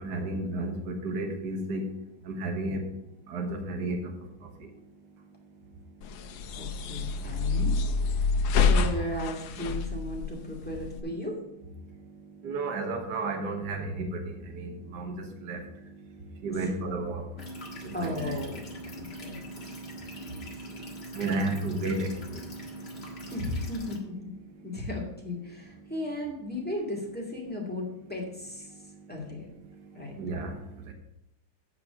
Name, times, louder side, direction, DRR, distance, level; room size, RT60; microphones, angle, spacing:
voice 1, 0.0-1.9 2.2-2.8 3.3-4.2 4.4-4.7 11.9-18.4 19.6-23.2 24.7-24.8 29.9-30.9, right 2 dB, 55° right, 4 dB, 1.8 m, -34 dB
sound 1, 6.0-11.0, left 4 dB, 70° left, 1.4 m, -27 dB
voice 2, 6.6-7.8 8.2-11.4 16.5-16.7 17.9-18.6 19.0-19.4 23.3-24.3 24.6-28.7 29.1-29.5 29.9-30.2, left 1 dB, 5° left, -1 dB, 2.1 m, -35 dB
sound 2, 17.4-24.0, right 1 dB, 30° left, 1.8 m, -42 dB
8.4 x 5.8 x 6.8 m, 0.86 s
omnidirectional pair, 2.2 m